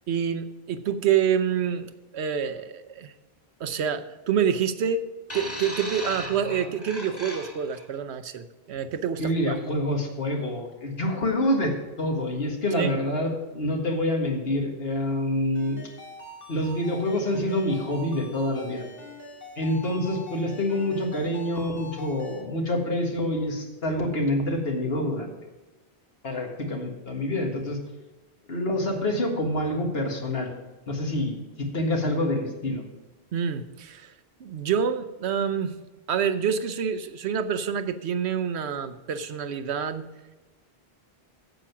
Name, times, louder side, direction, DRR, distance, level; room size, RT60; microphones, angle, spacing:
voice 1, 0.1-3.1 3.6-5.0 5.3-9.5 12.7-12.9 33.3-34.1 34.4-35.7 36.1-40.1, right 7 dB, 90° right, 10 dB, 1.0 m, -27 dB
sound 1, 5.3-7.8 8.8-8.9, equal, 15° left, 1.7 m, -37 dB
voice 2, 9.2-15.8 16.5-18.9 19.6-25.3 26.2-27.8 28.5-30.5 30.9-32.8, left 1 dB, 70° left, 1 dB, 1.9 m, -27 dB
Ringtone, 15.5-22.4, left 2 dB, 40° left, 2.7 m, -44 dB
9.0 x 7.6 x 5.9 m, 1.1 s
omnidirectional pair, 1.1 m